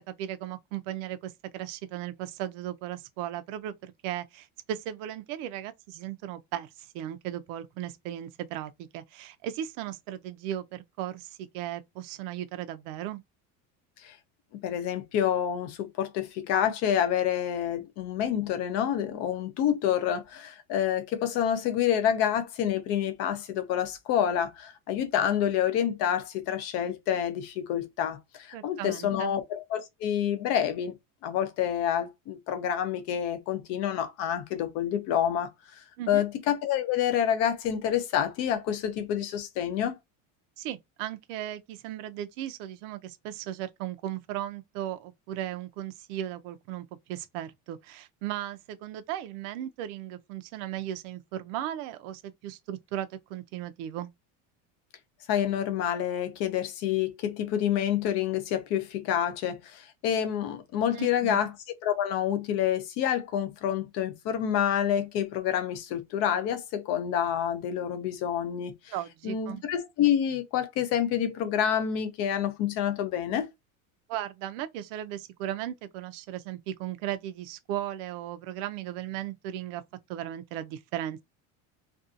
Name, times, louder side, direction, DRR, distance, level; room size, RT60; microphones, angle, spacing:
voice 1, 0.1-13.2 28.5-29.3 36.0-36.2 40.6-54.1 60.9-61.4 68.9-69.6 74.1-79.8 80.1-81.2, right 12 dB, 75° right, 0.5 m, -36 dB
voice 2, 14.6-31.0 31.2-35.5 36.1-40.0 55.3-61.5 61.8-68.9 69.2-73.5, left 9 dB, 40° left, 0.5 m, -28 dB
2.6 x 2.3 x 2.5 m
cardioid pair, 170°, 38 cm